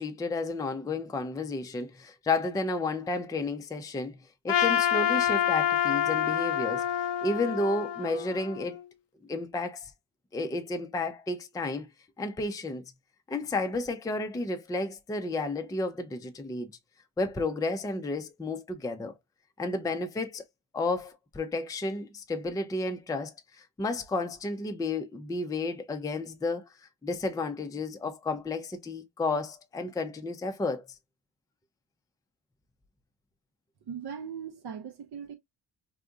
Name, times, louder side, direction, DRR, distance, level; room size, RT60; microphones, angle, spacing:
voice 1, 0.0-4.2 4.4-6.9 7.2-8.8 9.3-9.9 10.3-11.9 12.2-12.8 13.3-16.7 17.2-19.1 19.6-20.4 20.7-26.7 27.0-30.9, left 2 dB, 10° left, 0.5 m, -32 dB
Trumpet, 4.5-8.8, left 10 dB, 60° left, 0.7 m, -27 dB
voice 2, 33.9-35.3, right 7 dB, 55° right, 0.7 m, -39 dB
3.4 x 2.6 x 2.4 m
supercardioid pair, 60°, 47 cm